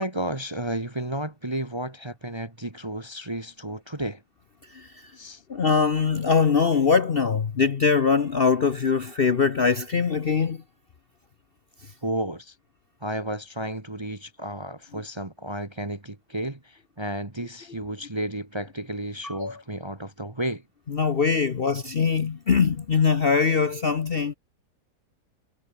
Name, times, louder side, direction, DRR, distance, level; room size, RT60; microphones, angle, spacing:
voice 1, 0.0-4.2 5.2-5.4 12.0-12.6 13.0-20.6, right 1 dB, 15° right, 1.8 m, -32 dB
voice 2, 5.5-10.6 19.2-19.5 20.9-24.3, left 5 dB, 40° left, 1.0 m, -22 dB
omnidirectional pair, 1.7 m